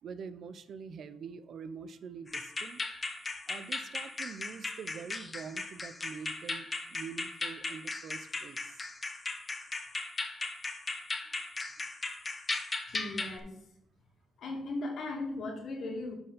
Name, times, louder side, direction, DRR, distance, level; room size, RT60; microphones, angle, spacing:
voice 1, 0.0-2.8 3.3-8.9, right 6 dB, 60° right, 13 dB, 0.5 m, -45 dB
sound 1, 2.3-13.4, left 3 dB, 25° left, 1.0 m, -38 dB
voice 2, 12.9-13.6 14.4-16.1, left 2 dB, 65° left, 0 dB, 2.3 m, -37 dB
11.5 x 4.4 x 3.9 m, 0.78 s
cardioid pair, 90°, 0 cm